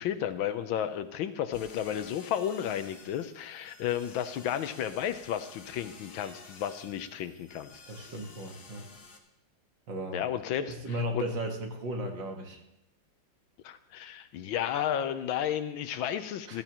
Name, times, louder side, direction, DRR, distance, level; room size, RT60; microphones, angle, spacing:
voice 1, 0.0-7.7 10.1-11.2 13.6-16.6, left 10 dB, 75° left, 11 dB, 1.4 m, -33 dB
sound 1, 1.5-9.2, left 4 dB, 50° left, 1.7 m, -52 dB
voice 2, 7.9-8.9 9.9-10.2 10.6-12.6 16.5-16.6, right 1 dB, 60° right, 3 dB, 2.2 m, -35 dB
15.0 x 14.0 x 3.0 m, 0.82 s
omnidirectional pair, 2.3 m